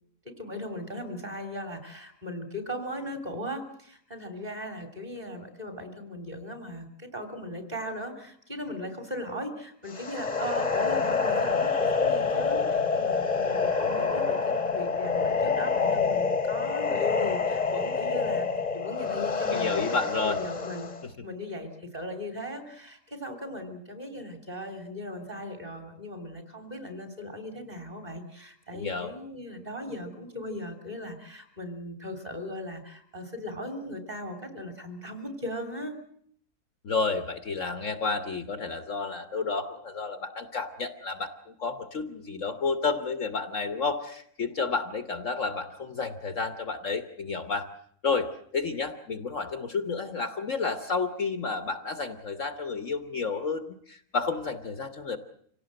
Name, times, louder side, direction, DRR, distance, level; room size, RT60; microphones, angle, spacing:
voice 1, 0.2-20.9 21.2-36.0, left 1 dB, 25° right, 6 dB, 3.3 m, -38 dB
sound 1, 9.9-21.0, left 5 dB, 25° left, 1.5 m, -27 dB
voice 2, 19.5-20.4 28.7-29.1 36.8-47.7 48.0-55.2, left 4 dB, 55° left, 9 dB, 1.4 m, -31 dB
26.0 x 17.5 x 7.7 m, 0.65 s
omnidirectional pair, 1.7 m